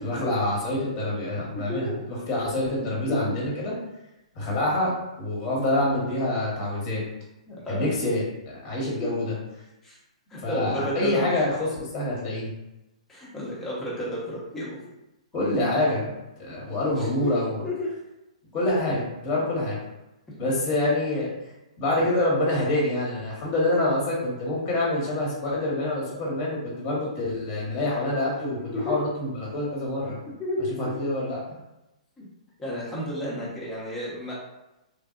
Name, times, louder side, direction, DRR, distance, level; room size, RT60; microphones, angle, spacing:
voice 1, 0.0-3.7 4.3-7.0 7.7-9.4 10.4-12.5 15.3-17.7 18.5-19.8 20.4-21.3 21.8-30.2 30.8-31.4, left 1 dB, 25° left, -4 dB, 1.3 m, -26 dB
voice 2, 2.8-3.4 7.5-7.9 9.0-9.1 9.8-10.0 10.3-11.4 13.1-14.8 17.0-17.3 17.6-17.9 19.3-19.4 28.7-29.0 30.3-31.1 32.2-32.3 32.6-34.4, left 1 dB, 10° left, -7 dB, 1.1 m, -32 dB
3.3 x 2.6 x 2.5 m, 0.95 s
hypercardioid pair, 140°, 4 cm